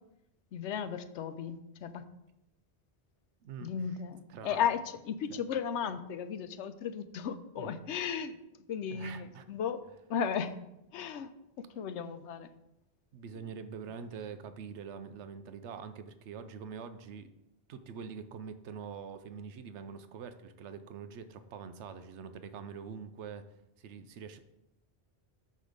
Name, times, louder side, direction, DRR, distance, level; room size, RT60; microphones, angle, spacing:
voice 1, 0.5-2.0 3.6-8.4 8.7-9.8 10.1-10.6 10.9-11.3 11.8-12.5, left 7 dB, 90° left, 11 dB, 0.9 m, -35 dB
voice 2, 3.4-3.7 4.3-4.6 5.3-5.4 7.6-7.8 8.9-9.5 13.1-17.3 17.7-23.4 23.8-24.4, right 6 dB, 85° right, 10 dB, 0.9 m, -44 dB
8.3 x 3.3 x 6.5 m, 0.87 s
omnidirectional pair, 1.1 m